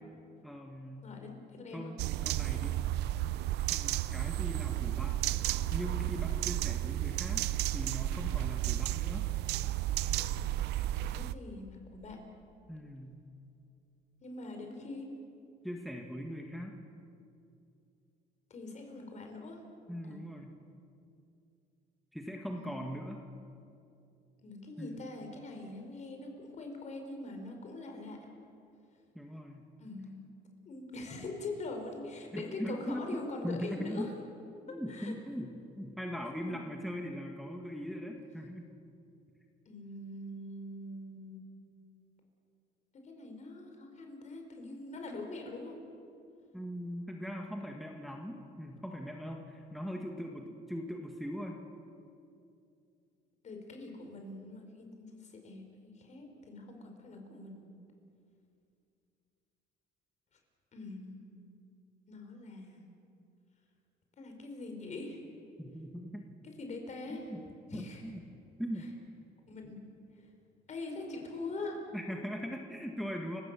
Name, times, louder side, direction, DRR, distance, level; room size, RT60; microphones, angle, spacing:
voice 1, 0.4-1.2 1.7-2.8 3.7-5.2 5.7-7.5 7.7-9.3 12.7-13.2 15.6-16.7 19.9-20.5 22.1-23.2 24.8-25.0 29.2-29.7 32.3-34.1 34.7-38.7 46.5-51.6 65.6-66.2 67.1-67.4 67.7-68.2 68.6-68.9 71.9-73.4, equal, ahead, 1 dB, 1.7 m, -40 dB
voice 2, 1.0-1.9 11.1-12.2 14.2-15.1 18.5-19.6 20.1-20.2 22.5-22.8 24.4-28.3 29.8-30.3 30.7-34.1 34.9-35.1 36.5-36.6 39.6-41.4 43.0-45.8 50.3-50.4 53.4-57.7 60.7-61.3 62.1-62.8 64.2-65.2 66.6-67.3 67.7-68.0 69.5-69.8 70.7-71.8, left 2 dB, 45° left, 3 dB, 5.0 m, -43 dB
sound 1, 2.0-11.3, right 14 dB, 80° right, 0.6 m, -32 dB
30.0 x 17.0 x 7.0 m, 2.6 s
cardioid pair, 110°, 17 cm